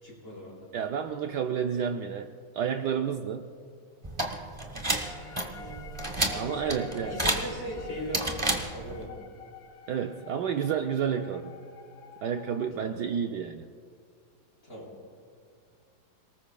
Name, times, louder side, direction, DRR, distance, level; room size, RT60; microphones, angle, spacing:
voice 1, 0.0-0.7 5.2-8.3 8.7-9.1 12.7-12.9 14.6-14.9, equal, 40° left, -4 dB, 4.3 m, -40 dB
voice 2, 0.7-2.3 2.5-3.5 6.3-7.2 9.9-11.5 12.2-13.7, right 8 dB, 70° right, 5 dB, 1.1 m, -30 dB
sound 1, 4.0-9.1, right 2 dB, 20° right, 1.0 m, -32 dB
sound 2, 5.0-12.7, left 4 dB, 75° left, 1.7 m, -48 dB
28.0 x 19.0 x 2.3 m, 2.2 s
omnidirectional pair, 2.1 m